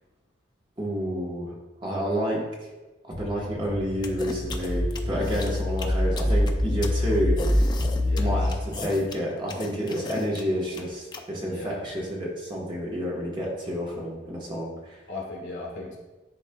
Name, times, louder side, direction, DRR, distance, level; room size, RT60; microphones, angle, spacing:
voice 1, 0.8-1.5 1.8-2.4 3.1-7.7 8.2-8.5 8.8-15.0, equal, 25° right, -3 dB, 1.1 m, -29 dB
sound 1, 3.1-8.5, left 1 dB, 50° right, 1.4 m, -25 dB
sound 2, 4.0-11.2, left 3 dB, 25° left, 0.4 m, -36 dB
voice 2, 5.1-5.5 8.0-8.6 11.4-11.9 15.1-16.0, left 2 dB, 70° left, -2 dB, 1.7 m, -38 dB
10.5 x 4.1 x 2.2 m, 1.2 s
head